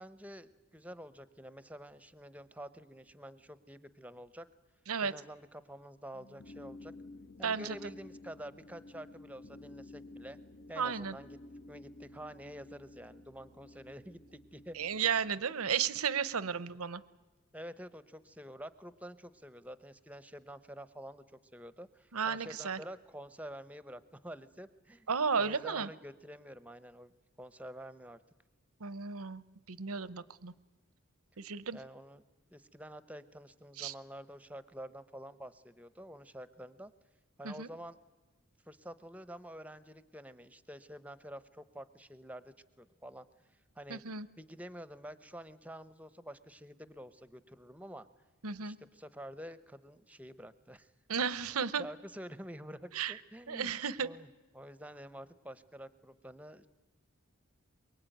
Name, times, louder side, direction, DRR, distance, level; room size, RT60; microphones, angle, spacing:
voice 1, 0.0-4.5 5.0-6.9 7.4-10.4 10.7-11.4 11.7-15.1 17.5-21.2 21.5-25.1 25.4-28.2 31.7-32.2 32.5-36.9 37.4-38.0 38.7-43.3 43.8-44.0 44.4-48.1 48.6-50.9 51.4-53.7 54.0-54.3 54.5-56.7, equal, 5° right, 14 dB, 0.8 m, -48 dB
sound 1, 6.1-15.3, left 2 dB, 50° left, 0.9 m, -52 dB
voice 2, 7.4-7.7 10.8-11.2 14.8-17.0 22.1-22.8 25.1-25.9 28.8-29.4 29.7-30.5 31.4-31.8 33.8-33.9 37.4-37.7 43.9-44.3 48.4-48.8 51.1-51.8 52.9-53.2 53.5-54.1, right 6 dB, 85° right, 17 dB, 0.9 m, -33 dB
23.0 x 23.0 x 9.2 m, 1.2 s
head